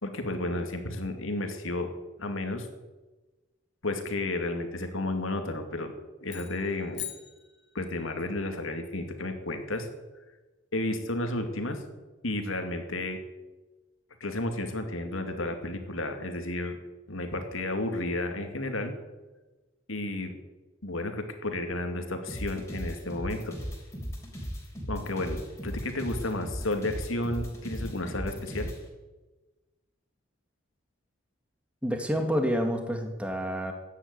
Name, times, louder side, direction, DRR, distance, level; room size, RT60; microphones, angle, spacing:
voice 1, 0.0-1.9 2.2-2.7 3.8-5.9 6.2-7.0 7.7-9.9 10.7-11.8 12.2-13.2 14.2-16.8 17.1-19.0 19.9-20.4 20.8-23.6 24.9-28.7, left 2 dB, 80° left, 5 dB, 2.5 m, -32 dB
sound 1, 6.3-8.2, left 12 dB, 60° left, 2.2 m, -42 dB
sound 2, 22.3-28.8, equal, 15° left, 3.6 m, -37 dB
voice 2, 31.8-33.7, equal, 5° right, 4 dB, 2.0 m, -28 dB
15.0 x 10.0 x 9.5 m, 1.2 s
head